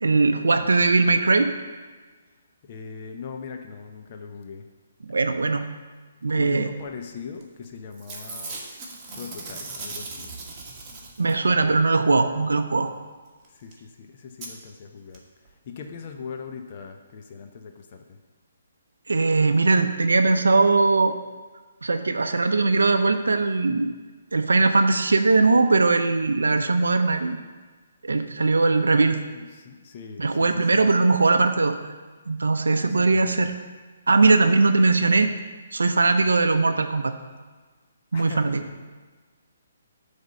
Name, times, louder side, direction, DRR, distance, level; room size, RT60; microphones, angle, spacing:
voice 1, 0.0-1.5 5.0-5.7 6.2-6.7 11.2-12.9 19.1-21.2 21.8-23.9 24.3-27.4 28.0-29.2 30.2-31.7 32.3-33.5 34.1-35.3 35.7-37.1 38.1-38.6, right 3 dB, 85° right, 8 dB, 0.5 m, -20 dB
voice 2, 2.6-4.7 6.3-8.6 9.1-10.3 10.9-11.1 11.5-11.9 13.5-15.2 15.6-18.2 29.1-30.9 32.6-33.6 34.4-34.7 38.1-38.7, left 5 dB, 40° left, 5 dB, 0.6 m, -40 dB
Packing tape duct tape / Tearing, 7.4-7.7 7.9-11.5 13.4-13.5 13.7-13.8 14.4-14.5 15.1-15.2 15.5-15.6, right 3 dB, 20° right, 1.4 m, -38 dB
7.9 x 3.5 x 6.4 m, 1.4 s
hypercardioid pair, 145°, 0 cm